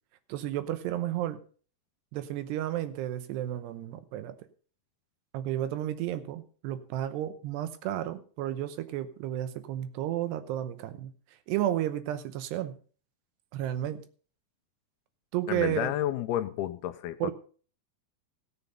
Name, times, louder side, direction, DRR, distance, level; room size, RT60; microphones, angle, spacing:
voice 1, 0.3-1.4 2.1-4.4 5.3-11.1 11.5-12.8 13.5-14.0 15.3-15.9 17.2-17.3, right 12 dB, 85° right, 11 dB, 3.0 m, -32 dB
voice 2, 15.5-17.3, left 12 dB, 80° left, 9 dB, 2.5 m, -31 dB
16.5 x 7.0 x 5.4 m, 0.41 s
omnidirectional pair, 4.8 m